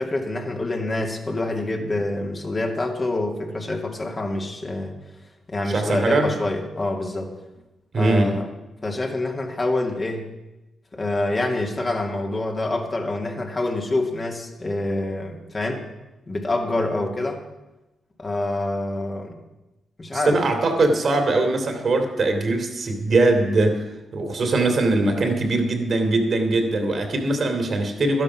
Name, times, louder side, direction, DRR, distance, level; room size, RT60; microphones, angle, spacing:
voice 1, 0.0-5.0 5.5-7.3 7.9-8.5 8.8-10.3 10.9-15.9 16.3-17.4 18.2-19.4 20.0-20.4, left 2 dB, 35° left, 2 dB, 2.4 m, -26 dB
voice 2, 5.7-6.3 7.9-8.4 20.1-23.8 24.1-28.2, right 2 dB, 60° right, 5 dB, 2.6 m, -21 dB
12.0 x 10.5 x 6.1 m, 1.0 s
supercardioid pair, 55°, 0 cm